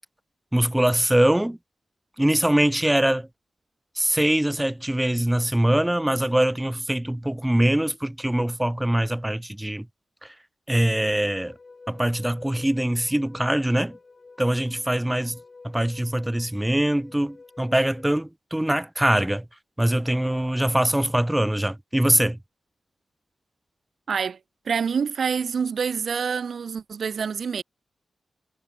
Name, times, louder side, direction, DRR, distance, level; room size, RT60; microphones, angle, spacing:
voice 1, 0.5-1.6 2.2-3.3 4.0-9.9 10.2-10.3 10.7-11.5 11.9-14.0 14.4-15.4 15.6-19.5 19.8-22.4, right 1 dB, 10° right, 0.7 m, -23 dB
sound 1, 11.2-18.0, left 3 dB, 40° left, 7.9 m, -49 dB
voice 2, 24.1-24.4 24.7-27.6, right 6 dB, 70° right, 0.9 m, -26 dB
wide cardioid pair, 105°, 0 cm